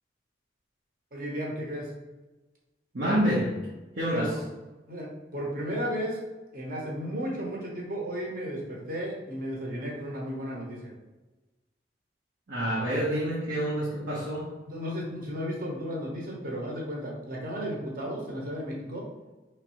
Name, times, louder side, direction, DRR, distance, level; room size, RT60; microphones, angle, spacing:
voice 1, 1.1-1.9 4.1-4.4 4.9-6.2 6.5-10.9 14.7-19.1, equal, 50° right, -3 dB, 1.1 m, -34 dB
voice 2, 2.9-3.6 4.0-4.3 12.5-14.6, equal, 85° right, -7 dB, 1.1 m, -27 dB
4.7 x 3.3 x 3.1 m, 1.1 s
head